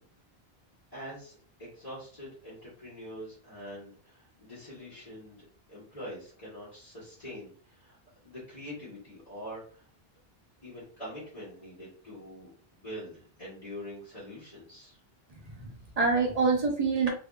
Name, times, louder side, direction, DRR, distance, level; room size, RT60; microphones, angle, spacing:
voice 1, 0.9-8.0 8.2-9.9 10.6-15.0, equal, 35° left, -10 dB, 1.4 m, -44 dB
voice 2, 15.3-17.1, right 4 dB, 40° right, 0 dB, 0.9 m, -27 dB
3.4 x 3.0 x 2.4 m, 0.42 s
omnidirectional pair, 1.0 m